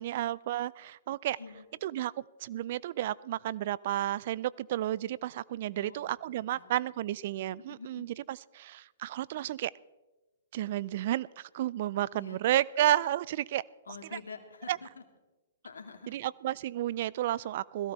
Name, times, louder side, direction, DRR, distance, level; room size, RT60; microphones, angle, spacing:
voice 1, 0.0-1.4 1.8-9.7 10.5-13.6 14.7-14.8 16.1-17.9, right 13 dB, 55° right, 22 dB, 0.4 m, -32 dB
voice 2, 5.7-6.8 7.7-8.1 12.1-12.4 13.9-15.0 15.6-16.2, left 5 dB, 80° left, 6 dB, 2.1 m, -47 dB
17.0 x 15.0 x 4.1 m, 1.1 s
hypercardioid pair, 125°, 0 cm